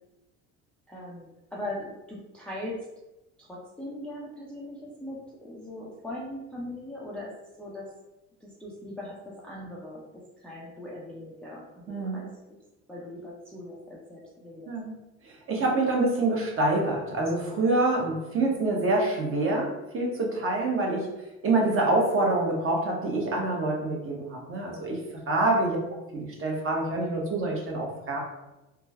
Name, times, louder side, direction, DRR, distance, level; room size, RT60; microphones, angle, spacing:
voice 1, 0.9-2.8 3.4-7.3 7.6-7.9 8.4-12.3 12.9-14.7 18.5-18.7 25.4-25.7, left 1 dB, 5° left, -5 dB, 0.4 m, -40 dB
voice 2, 11.9-12.2 14.7-14.9 15.2-21.1 21.4-25.0 25.3-25.8 26.1-28.2, right 2 dB, 30° right, -1 dB, 0.9 m, -26 dB
3.1 x 2.2 x 2.2 m, 0.99 s
hypercardioid pair, 75°, 40 cm